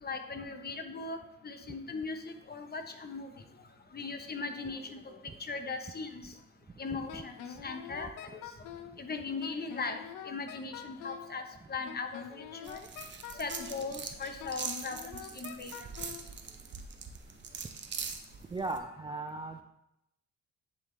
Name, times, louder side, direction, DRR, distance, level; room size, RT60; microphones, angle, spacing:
voice 1, 0.0-1.2 1.4-2.2 2.5-3.3 3.9-5.0 5.4-6.2 6.8-7.3 7.6-8.4 9.0-10.0 10.2-11.4 11.7-12.9 13.3-15.0 15.3-15.7, left 4 dB, 30° left, 6 dB, 0.9 m, -38 dB
Wind instrument woodwind instrument, 7.1-8.9 9.4-11.3 11.8-13.8 14.4-16.2, left 9 dB, 85° left, 0.7 m, -45 dB
sound 1, 12.7-18.8, right 5 dB, 35° right, 0.8 m, -42 dB
voice 2, 18.5-19.6, right 3 dB, 15° right, 6 dB, 0.3 m, -37 dB
10.0 x 3.7 x 3.9 m, 0.85 s
cardioid pair, 95°, 31 cm